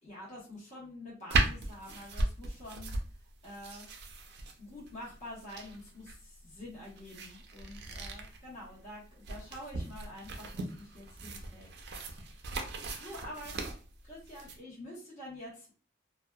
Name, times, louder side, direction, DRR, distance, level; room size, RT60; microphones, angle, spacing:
voice 1, 0.0-2.9 3.4-3.9 4.6-11.7 12.1-12.4 13.0-13.6 14.0-15.7, left 1 dB, 40° left, -7 dB, 1.2 m, -47 dB
sound 1, 1.3-14.6, right 2 dB, 55° right, 0.4 m, -37 dB
2.7 x 2.3 x 2.2 m, 0.39 s
head